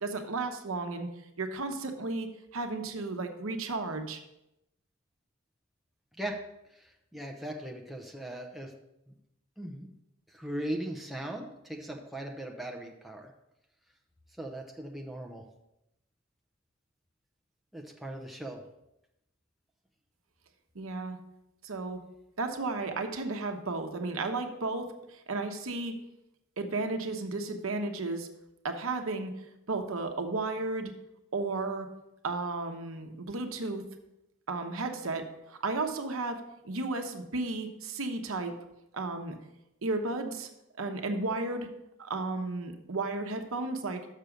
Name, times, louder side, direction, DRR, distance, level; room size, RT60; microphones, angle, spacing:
voice 1, 0.0-1.1 1.4-4.2 20.7-21.2 21.6-22.0 22.4-26.0 26.6-28.3 28.6-29.3 29.7-30.9 31.3-31.9 32.2-33.8 34.5-38.6 38.9-39.4 39.8-40.5 40.8-41.7 42.0-44.1, right 3 dB, 85° right, 5 dB, 0.9 m, -33 dB
voice 2, 6.7-8.7 9.1-9.2 9.6-9.9 10.3-13.3 14.4-15.4 17.7-18.6, right 1 dB, ahead, 1 dB, 0.7 m, -39 dB
6.7 x 5.9 x 5.1 m, 0.87 s
head